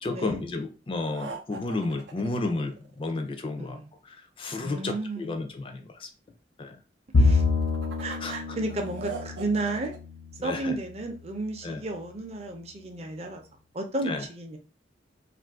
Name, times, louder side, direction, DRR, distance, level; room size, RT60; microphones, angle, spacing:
voice 1, 0.0-3.8 4.1-6.1 6.6-6.8 8.2-8.3 10.4-10.8 11.6-11.8 14.1-14.2, left 2 dB, 30° left, 7 dB, 0.4 m, -32 dB
sound 1, 1.1-3.3 7.4-10.0, right 5 dB, 90° right, 0.5 m, -41 dB
voice 2, 3.6-3.9 4.6-5.4 7.2-7.4 8.0-9.9 10.4-13.4 13.7-14.6, right 2 dB, 35° right, 3 dB, 0.5 m, -33 dB
Bowed string instrument, 7.1-10.6, left 3 dB, 85° left, 0.7 m, -26 dB
2.5 x 2.5 x 3.5 m, 0.33 s
head